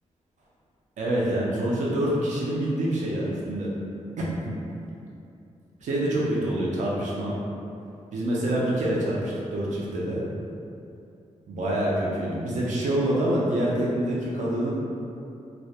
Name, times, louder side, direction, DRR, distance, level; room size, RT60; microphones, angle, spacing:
voice 1, 1.0-3.7 4.2-4.6 5.8-7.3 8.1-10.2 11.5-14.7, right 1 dB, 85° right, -5 dB, 0.4 m, -26 dB
2.3 x 2.1 x 2.7 m, 2.6 s
wide cardioid pair, 140°, 12 cm